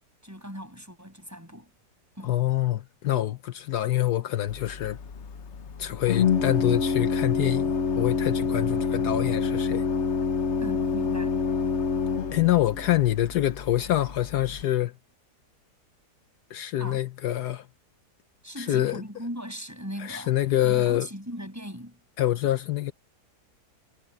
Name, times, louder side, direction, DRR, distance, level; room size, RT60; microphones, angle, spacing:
voice 1, 0.2-1.7 2.2-2.4 10.6-11.4 16.8-17.0 18.4-20.3 20.6-22.0, equal, 10° right, 7.4 m, -39 dB
voice 2, 2.2-5.0 5.8-9.8 12.3-14.9 16.5-17.7 18.6-19.0 20.0-21.1 22.2-22.9, left 13 dB, 75° left, 1.3 m, -26 dB
Organ, 4.5-14.6, left 5 dB, 50° left, 1.2 m, -27 dB
omnidirectional pair, 1.8 m